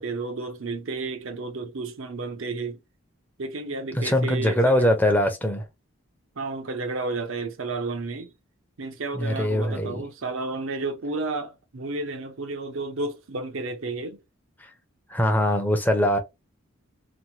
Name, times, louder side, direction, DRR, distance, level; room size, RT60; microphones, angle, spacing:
voice 1, 0.0-2.8 3.4-4.9 6.4-8.3 8.8-14.2, right 3 dB, 70° right, 0.7 m, -32 dB
voice 2, 3.9-5.7 9.1-10.0 14.6-14.7 15.1-16.2, left 1 dB, 10° left, 0.6 m, -22 dB
3.1 x 2.1 x 2.7 m
head